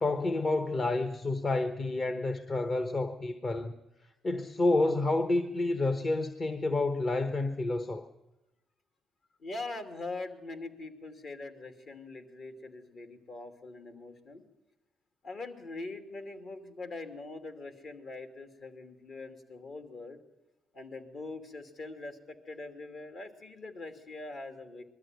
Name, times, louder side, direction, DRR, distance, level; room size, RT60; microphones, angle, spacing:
voice 1, 0.0-3.7 4.2-8.0, left 2 dB, 40° left, 9 dB, 1.1 m, -29 dB
voice 2, 9.4-14.4 15.2-20.2 20.7-24.8, left 2 dB, 55° left, 7 dB, 2.8 m, -43 dB
21.0 x 13.5 x 9.3 m, 1.0 s
cardioid pair, 90°, 0 cm